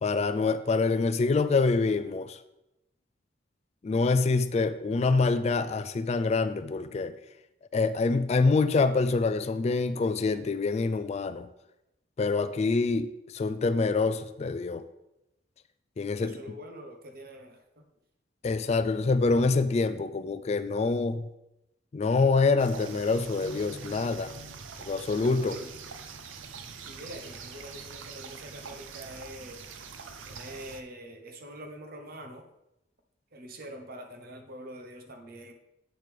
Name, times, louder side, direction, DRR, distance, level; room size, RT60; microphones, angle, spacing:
voice 1, 0.0-2.4 3.8-7.1 7.7-11.5 12.2-13.1 13.3-14.8 16.0-16.4 18.4-21.3 21.9-24.3 24.8-25.5, left 3 dB, 35° left, 12 dB, 0.3 m, -26 dB
voice 2, 16.2-17.8 25.4-25.7 26.8-29.6 30.2-32.5 33.3-35.5, equal, 50° right, 4 dB, 0.9 m, -44 dB
sound 1, 22.6-30.8, right 5 dB, 90° right, 0.6 m, -44 dB
8.2 x 6.7 x 3.4 m, 0.89 s
head